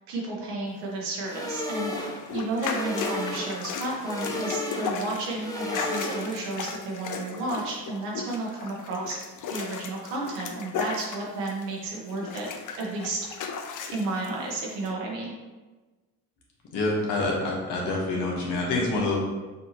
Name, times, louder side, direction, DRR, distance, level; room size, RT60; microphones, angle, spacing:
voice 1, 0.1-9.2 9.5-12.5 12.8-13.2 13.9-15.3, right 2 dB, 85° right, -3 dB, 1.1 m, -32 dB
sound 1, 1.2-6.6, left 1 dB, 10° left, 0.9 m, -34 dB
sound 2, 1.8-11.8 12.1-14.3 14.8-14.9, left 5 dB, 50° left, 0.6 m, -35 dB
voice 2, 16.7-19.2, left 2 dB, 70° left, -2 dB, 1.3 m, -26 dB
5.4 x 2.7 x 2.9 m, 1.2 s
supercardioid pair, 60°, 42 cm